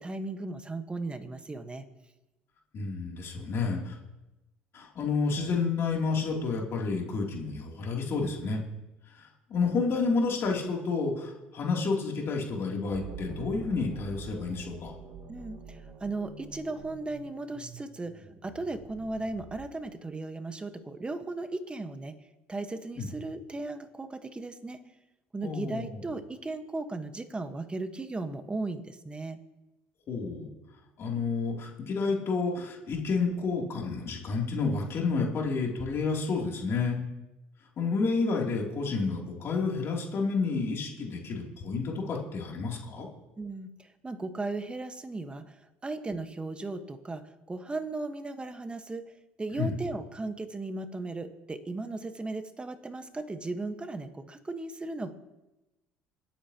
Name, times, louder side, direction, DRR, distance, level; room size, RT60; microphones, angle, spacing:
voice 1, 0.0-1.8 15.3-22.1 22.5-24.8 25.3-29.4 43.4-49.1 49.4-55.1, right 2 dB, 20° right, 8 dB, 1.4 m, -36 dB
voice 2, 2.7-4.0 4.7-8.6 9.1-14.9 23.0-23.1 25.4-26.0 30.1-30.5 31.0-37.0 37.8-43.1 49.6-49.7, left 4 dB, 55° left, -1 dB, 3.0 m, -30 dB
sound 1, 12.9-19.8, right 5 dB, 60° right, 3.8 m, -46 dB
27.0 x 9.0 x 3.0 m, 1.0 s
supercardioid pair, 75°, 5 cm